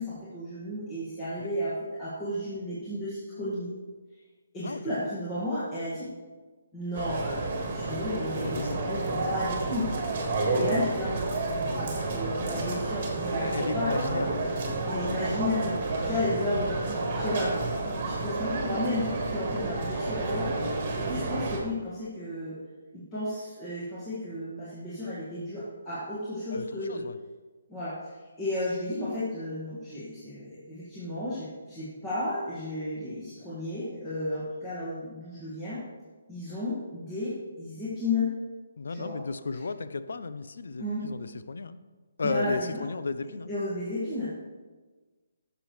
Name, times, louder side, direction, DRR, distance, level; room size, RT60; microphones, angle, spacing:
voice 1, 0.0-3.7 4.5-6.1 6.7-9.9 10.5-14.3 14.9-17.6 18.0-20.6 21.0-22.6 22.9-27.1 27.7-35.8 36.3-38.3 38.9-39.2 40.8-41.1 42.2-42.9 43.5-44.3, left 1 dB, 15° left, -11 dB, 1.8 m, -33 dB
voice 2, 4.6-4.9 8.4-8.9 13.2-14.5 26.5-27.2 38.8-41.8 42.2-43.5, left 4 dB, 70° left, 12 dB, 0.5 m, -34 dB
sound 1, 6.9-21.6, right 2 dB, 30° right, 1.7 m, -30 dB
12.5 x 6.9 x 3.2 m, 1.3 s
hypercardioid pair, 175°, 0 cm